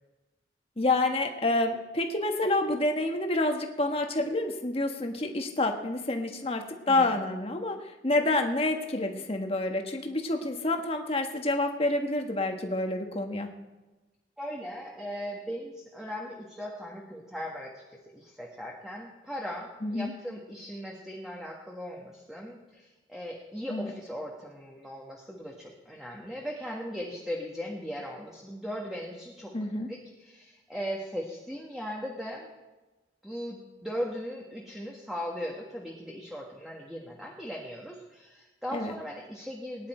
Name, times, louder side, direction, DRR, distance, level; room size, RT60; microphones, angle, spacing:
voice 1, 0.8-13.5 19.8-20.1 23.7-23.9 29.5-29.9 38.7-38.9, left 2 dB, 30° left, 4 dB, 1.4 m, -28 dB
voice 2, 6.8-7.2 14.4-17.8 18.1-29.5 29.9-32.5 33.2-39.9, equal, ahead, -2 dB, 1.6 m, -38 dB
20.5 x 10.5 x 4.4 m, 1.1 s
head